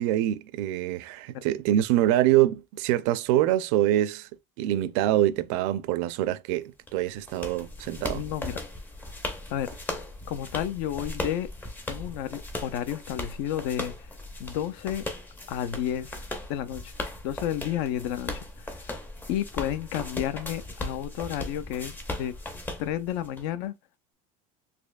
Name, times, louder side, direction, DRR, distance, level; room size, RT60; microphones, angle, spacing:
voice 1, 0.0-4.3 4.6-8.2, right 13 dB, 70° right, 0.4 m, -25 dB
sound 1, 6.9-23.4, left 1 dB, 10° left, 0.5 m, -38 dB
voice 2, 8.0-8.6 9.5-9.7 10.3-11.5 11.9-14.1 14.4-15.1 15.5-16.2 16.5-16.9 17.2-18.9 19.3-22.3 22.8-23.7, left 11 dB, 65° left, 0.5 m, -31 dB
4.1 x 2.7 x 2.3 m
cardioid pair, 170°, 16 cm